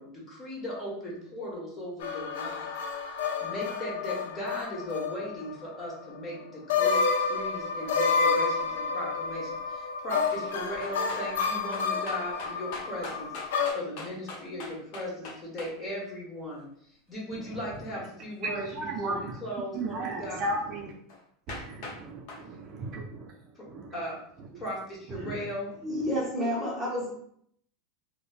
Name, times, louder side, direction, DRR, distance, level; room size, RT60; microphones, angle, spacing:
voice 1, 0.0-13.3 13.7-16.7 17.1-18.7 19.0-20.6 23.5-23.7 23.9-24.2 24.5-25.7, equal, 25° left, -5 dB, 1.2 m, -37 dB
sound 1, 2.0-5.5 5.9-6.0 6.7-13.7, left 5 dB, 85° left, 0.3 m, -29 dB
sound 2, 10.8-15.7 21.1-21.2 21.5-22.0 22.3-22.4, left 3 dB, 60° left, 0.7 m, -41 dB
voice 2, 18.4-19.3 19.7-20.9 21.5-23.3 23.7-23.9 25.2-25.3, right 2 dB, 45° right, 0 dB, 0.5 m, -35 dB
voice 3, 25.8-27.1, equal, 5° right, -4 dB, 1.0 m, -30 dB
3.1 x 2.1 x 2.4 m, 0.66 s
supercardioid pair, 120°, 0 cm